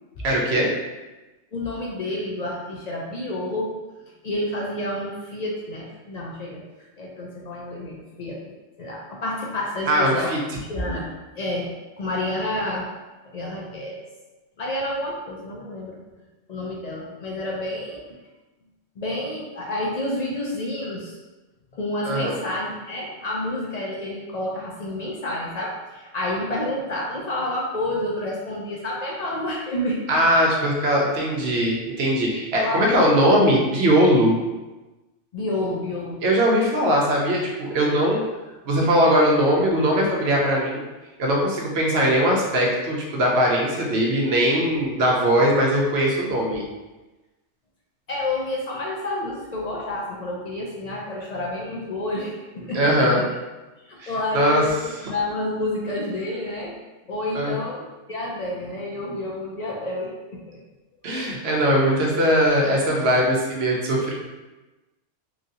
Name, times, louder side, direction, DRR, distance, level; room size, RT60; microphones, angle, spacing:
voice 1, 0.2-0.7 9.9-10.4 22.0-22.3 30.1-34.4 36.2-38.3 38.6-40.8 41.2-46.6 52.7-53.2 54.0-54.6 57.3-57.6 61.0-64.1, equal, 65° right, -2 dB, 0.9 m, -20 dB
voice 2, 1.5-3.7 4.2-6.6 7.0-8.5 8.8-10.4 10.7-11.1 11.3-12.9 13.2-14.0 14.6-16.0 16.5-18.0 19.0-21.2 21.7-30.0 32.6-33.2 35.3-36.2 48.1-53.2 53.8-54.8 55.1-56.8 57.1-60.6, left 1 dB, 60° left, -3 dB, 0.4 m, -29 dB
3.0 x 2.6 x 2.6 m, 1.1 s
omnidirectional pair, 1.2 m